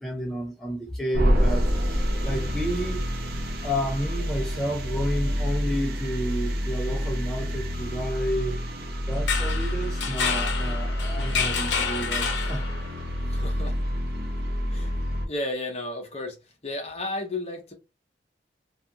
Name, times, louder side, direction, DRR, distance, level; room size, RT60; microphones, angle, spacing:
voice 1, 0.0-3.1 3.6-8.6 9.1-12.6, equal, ahead, 0.3 m, -31 dB
sound 1, 1.1-15.3, equal, 55° right, 0.6 m, -28 dB
sound 2, 9.1-13.0, left 6 dB, 75° left, 0.6 m, -29 dB
voice 2, 13.3-13.9 14.7-15.0 15.3-16.4 16.6-17.7, left 2 dB, 35° left, 0.7 m, -33 dB
2.4 x 2.3 x 2.7 m
head